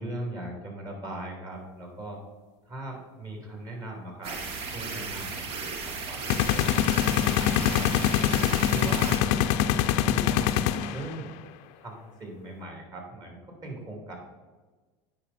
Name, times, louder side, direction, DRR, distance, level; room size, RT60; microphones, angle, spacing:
voice 1, 0.0-2.2 2.6-4.4 4.7-7.9 8.6-9.3 10.0-11.4 11.8-14.1, right 1 dB, 30° right, 1 dB, 2.8 m, -40 dB
sound 1, 4.2-9.2, right 4 dB, 55° right, 1.4 m, -35 dB
sound 2, 6.3-11.1, left 11 dB, 65° left, 0.5 m, -24 dB
8.5 x 5.5 x 4.2 m, 1.3 s
supercardioid pair, 100°, 13 cm